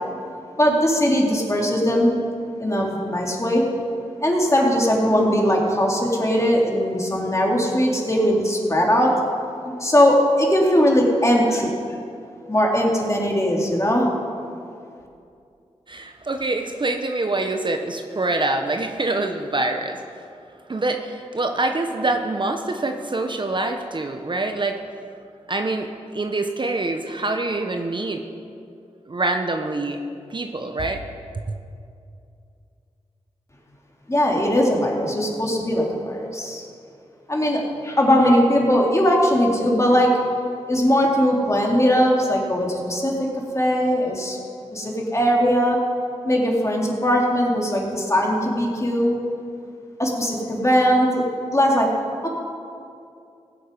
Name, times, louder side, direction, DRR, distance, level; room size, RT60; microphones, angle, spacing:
voice 1, 0.6-2.1 2.6-3.6 4.2-9.1 9.6-11.7 12.5-14.1 34.1-36.7 37.3-40.1 40.7-43.3 43.5-44.4 44.7-45.8 46.2-49.2 50.0-51.2 51.5-51.9 52.2-52.3, equal, 25° left, -2 dB, 3.1 m, -20 dB
voice 2, 15.9-20.0 20.7-24.8 25.5-28.2 29.1-30.0 30.3-31.0 31.5-31.6, right 2 dB, 40° right, 5 dB, 1.0 m, -25 dB
16.5 x 7.7 x 5.4 m, 2.5 s
cardioid pair, 40°, 12 cm